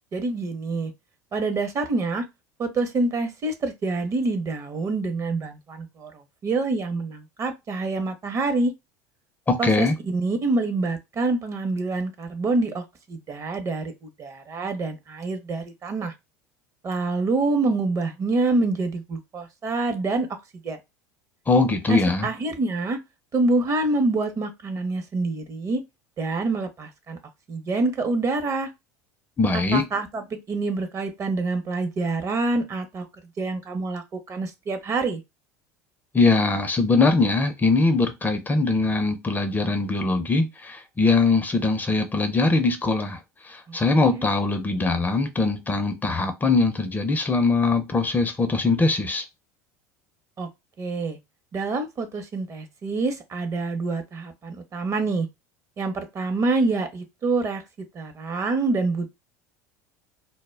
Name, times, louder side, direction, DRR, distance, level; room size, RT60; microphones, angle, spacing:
voice 1, 0.1-0.9 1.3-2.2 2.6-8.7 9.6-16.1 16.8-20.3 20.6-20.8 21.9-23.0 23.3-25.8 26.2-27.2 27.5-28.7 29.5-33.1 33.4-35.2 43.7-44.2 50.4-50.5 50.8-51.2 51.5-55.3 55.8-57.6 57.9-59.1, right 3 dB, 35° right, 0.6 m, -26 dB
voice 2, 9.5-10.0 21.5-22.3 29.4-29.8 36.1-43.2 43.4-49.2, left 3 dB, 20° left, 0.4 m, -22 dB
2.1 x 2.0 x 3.2 m
hypercardioid pair, 85°, 9 cm